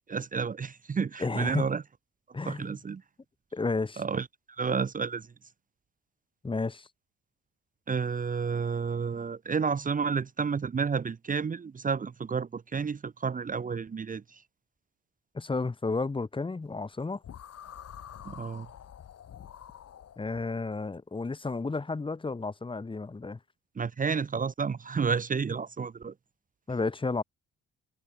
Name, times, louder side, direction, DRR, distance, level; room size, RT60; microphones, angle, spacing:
voice 1, 0.1-1.8 2.5-3.0 4.0-5.3 7.9-14.4 18.2-18.7 23.8-26.1, right 5 dB, 25° right, 0.7 m, -31 dB
voice 2, 1.2-1.7 2.3-2.7 3.5-4.0 6.4-6.9 15.3-17.2 20.2-23.4 26.7-27.2, left 3 dB, 15° left, 1.0 m, -32 dB
sound 1, 17.2-20.4, left 9 dB, 55° left, 1.6 m, -47 dB
cardioid pair, 90°, 30 cm